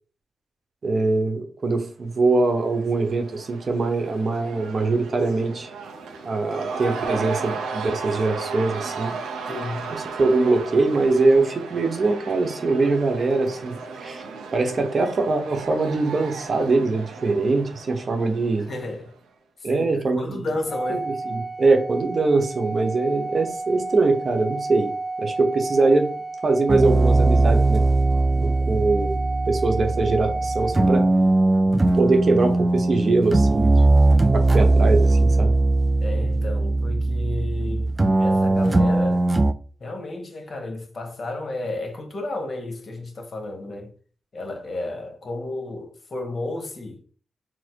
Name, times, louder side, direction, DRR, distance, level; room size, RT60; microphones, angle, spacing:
voice 1, 0.8-5.7 6.2-9.1 10.2-14.2 14.5-18.7 19.6-20.4 20.9-24.9 25.2-26.1 26.4-27.8 28.3-29.1 29.5-31.0 31.9-33.9 34.3-35.5, right 3 dB, 55° right, 0.9 m, -22 dB
Cheering / Crowd, 2.2-19.1, right 4 dB, 90° right, 0.6 m, -35 dB
voice 2, 9.5-9.9 18.7-19.1 19.6-19.8 20.2-21.1 36.0-37.9 38.2-39.3 39.8-43.9 44.3-47.0, left 2 dB, 50° left, 1.4 m, -32 dB
Organ, 20.7-31.5, right 2 dB, 30° left, 0.7 m, -32 dB
sound 1, 26.7-39.5, right 2 dB, 30° right, 0.4 m, -19 dB
4.3 x 2.1 x 4.5 m
supercardioid pair, 50°, 0 cm